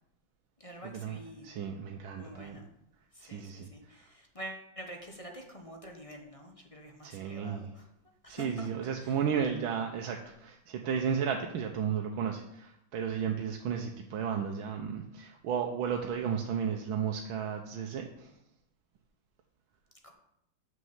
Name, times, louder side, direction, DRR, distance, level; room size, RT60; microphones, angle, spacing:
voice 1, 0.6-1.5 2.2-2.7 3.1-7.9 8.2-8.7 9.0-9.2 20.0-20.1, equal, 20° left, 2 dB, 0.9 m, -47 dB
voice 2, 1.4-2.6 3.2-4.1 7.0-7.7 8.3-18.3, right 7 dB, 85° right, 3 dB, 1.6 m, -34 dB
6.5 x 6.5 x 7.2 m, 0.79 s
omnidirectional pair, 2.2 m